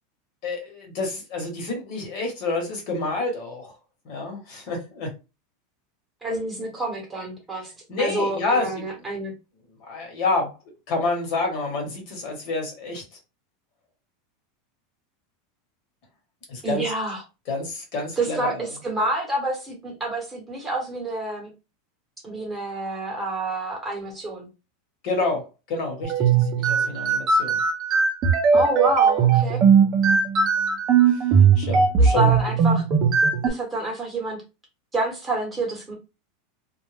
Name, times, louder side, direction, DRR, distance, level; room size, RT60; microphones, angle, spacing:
voice 1, 0.4-3.7 4.0-5.1 7.9-8.8 9.8-10.5 10.9-13.0 16.5-16.8 17.5-18.6 25.0-27.6 31.1-31.2 31.6-32.3, left 3 dB, 50° left, 1.2 m, -28 dB
voice 2, 6.2-7.7 8.0-9.3 16.6-17.2 18.2-21.5 22.2-24.5 28.5-29.6 32.0-32.8 33.4-34.4 34.9-35.9, right 2 dB, 10° right, 1.0 m, -28 dB
sound 1, 26.0-33.5, right 6 dB, 35° right, 0.5 m, -19 dB
2.3 x 2.0 x 3.2 m
supercardioid pair, 150°, 0 cm